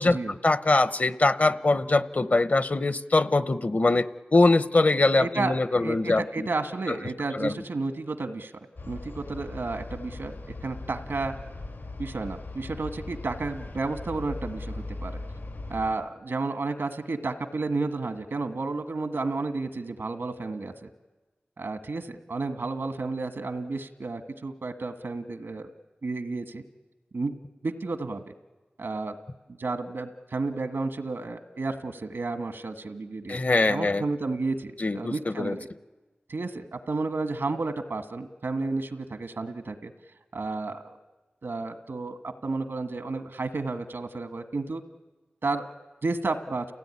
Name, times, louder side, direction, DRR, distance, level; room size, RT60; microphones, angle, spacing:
voice 1, 0.0-6.2 7.3-7.5 33.3-34.0 34.8-35.6, left 2 dB, 45° left, 14 dB, 0.9 m, -23 dB
voice 2, 5.2-8.5 8.8-10.4 10.6-11.3 12.0-15.2 15.7-20.9 21.6-25.7 26.0-26.6 27.1-27.3 27.6-28.3 28.8-29.2 29.5-33.4 33.7-35.7 36.3-39.9 40.3-41.0 41.4-44.8 45.4-45.7 46.0-46.6, right 3 dB, 85° right, 8 dB, 1.6 m, -32 dB
sound 1, 8.8-15.9, left 2 dB, 90° left, 3.6 m, -39 dB
29.5 x 17.0 x 9.8 m, 1.2 s
wide cardioid pair, 80°, 4 cm